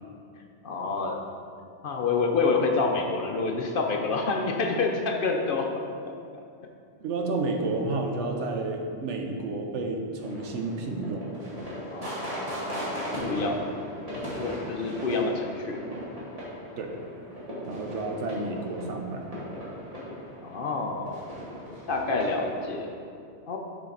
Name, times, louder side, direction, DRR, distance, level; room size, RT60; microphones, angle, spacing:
voice 1, 0.6-1.2 1.8-5.7 11.9-13.6 14.3-15.8 20.4-21.2 21.9-22.9 23.5-23.6, left 4 dB, 60° left, 2 dB, 0.7 m, -28 dB
voice 2, 7.0-11.4 16.8-16.9 17.6-19.4, right 2 dB, 85° right, 3 dB, 1.1 m, -31 dB
sound 1, 10.2-22.9, equal, 35° right, 1.7 m, -38 dB
7.0 x 5.0 x 3.8 m, 2.4 s
omnidirectional pair, 1.2 m